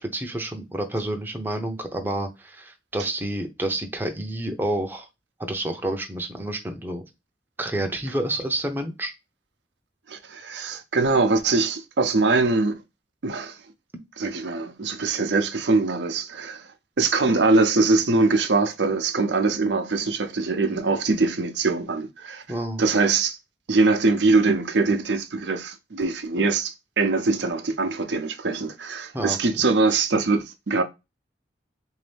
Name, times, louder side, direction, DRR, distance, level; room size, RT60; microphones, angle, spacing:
voice 1, 0.0-5.1 5.4-7.0 7.6-9.1 22.5-22.8 29.1-29.4, right 1 dB, 10° right, 0.6 m, -29 dB
voice 2, 10.1-12.8 13.2-13.6 14.2-16.7 17.0-22.4 22.8-23.4 23.7-30.8, right 3 dB, 85° right, 0.7 m, -22 dB
3.9 x 2.7 x 3.3 m
head